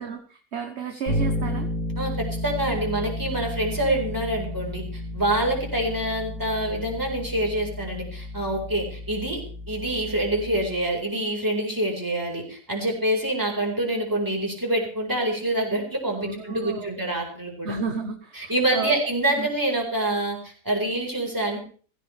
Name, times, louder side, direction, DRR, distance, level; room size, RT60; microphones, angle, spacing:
voice 1, 0.0-1.7 16.2-16.9 17.6-19.0 19.4-19.5, right 5 dB, 45° right, 5 dB, 1.4 m, -32 dB
Bass guitar, 1.1-10.9, left 1 dB, 55° left, 4.6 m, -32 dB
voice 2, 2.0-17.8 18.3-21.6, right 1 dB, 10° right, 0 dB, 4.5 m, -26 dB
16.0 x 16.0 x 3.4 m, 0.41 s
omnidirectional pair, 1.7 m